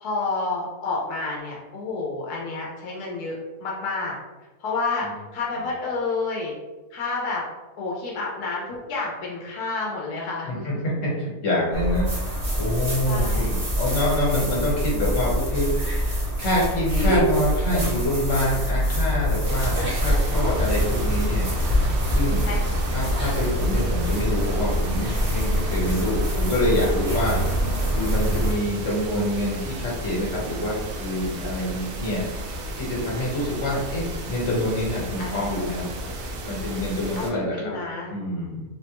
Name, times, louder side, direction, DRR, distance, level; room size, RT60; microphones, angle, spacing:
voice 1, 0.0-4.1 4.6-6.5 6.9-7.4 7.8-10.7 13.0-13.5 22.4-22.9 35.2-35.5 37.2-38.1, left 3 dB, 90° left, -3 dB, 1.2 m, -30 dB
voice 2, 10.5-21.5 21.7-22.5 22.9-27.4 27.8-32.2 32.8-35.9 36.5-37.7 38.1-38.6, left 1 dB, 55° left, -5 dB, 1.5 m, -26 dB
sound 1, 11.7-28.5, equal, 40° right, 1.0 m, -24 dB
sound 2, 19.4-37.3, right 1 dB, 75° right, 1.0 m, -34 dB
3.7 x 2.1 x 2.9 m, 1.2 s
omnidirectional pair, 1.6 m